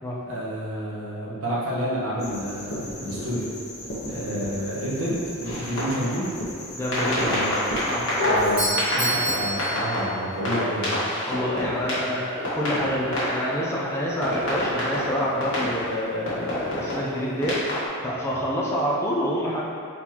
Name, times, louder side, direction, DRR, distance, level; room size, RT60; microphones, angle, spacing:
voice 1, 0.3-3.5 4.1-6.3 7.2-7.6 8.2-11.0 11.9-12.0, equal, 70° right, -7 dB, 1.1 m, -29 dB
sound 1, 2.2-8.7, left 1 dB, 45° left, 1.0 m, -32 dB
sound 2, 5.4-6.3 6.9-13.8 14.2-17.9, left 1 dB, 65° left, 1.4 m, -28 dB
voice 2, 6.7-7.6 7.9-8.0 11.3-19.6, equal, 10° left, -6 dB, 0.5 m, -27 dB
Doorbell, 8.3-10.5, right 1 dB, 5° right, 1.0 m, -29 dB
4.2 x 3.9 x 2.9 m, 2.4 s
head